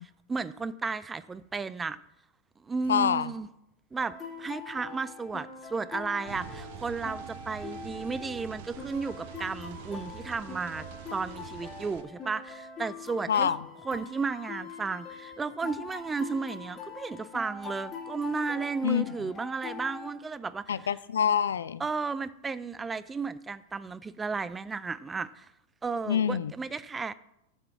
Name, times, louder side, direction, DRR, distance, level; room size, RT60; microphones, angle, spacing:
voice 1, 0.3-2.0 2.6-3.5 3.9-10.9 11.1-13.6 13.8-20.8 21.8-25.5 25.8-27.1, right 4 dB, 15° right, 17 dB, 0.3 m, -33 dB
voice 2, 2.9-3.3 13.3-13.6 18.8-19.1 20.7-21.8 26.1-26.5, left 8 dB, 65° left, 17 dB, 0.3 m, -26 dB
sound 1, 4.0-20.1, left 5 dB, 25° left, 1.8 m, -43 dB
sound 2, 6.3-12.0, right 9 dB, 50° right, 0.7 m, -45 dB
7.2 x 6.8 x 5.9 m, 0.84 s
figure-of-eight pair, 90°, 0 cm